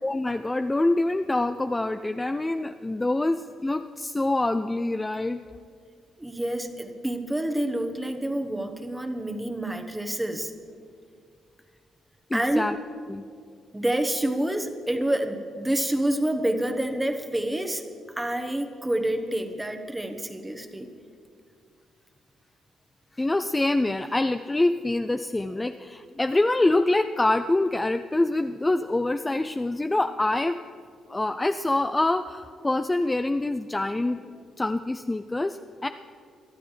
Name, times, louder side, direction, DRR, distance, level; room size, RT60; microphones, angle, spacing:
voice 1, 0.0-5.4 12.3-12.8 13.1-13.2 23.2-30.6 31.1-34.2 34.6-35.9, left 2 dB, 15° left, 8 dB, 0.4 m, -25 dB
voice 2, 6.2-10.5 12.3-12.6 13.7-17.8 18.2-20.9, right 1 dB, 10° right, 6 dB, 1.2 m, -28 dB
22.5 x 12.5 x 3.3 m, 2.2 s
cardioid pair, 90°, 0 cm